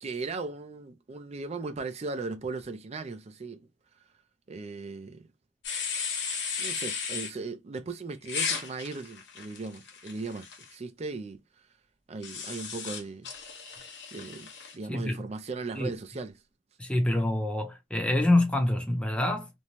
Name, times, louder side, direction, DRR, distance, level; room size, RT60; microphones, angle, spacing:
voice 1, 0.0-3.7 4.5-5.3 6.6-11.4 12.1-13.3 14.1-16.3, right 3 dB, 35° right, 0.4 m, -37 dB
sound 1, 5.6-7.3 8.3-10.7 12.2-14.8, left 6 dB, 65° left, 0.8 m, -35 dB
voice 2, 14.9-15.3 15.8-15.9 16.8-19.5, left 1 dB, 5° left, 0.7 m, -26 dB
2.6 x 2.2 x 3.0 m
head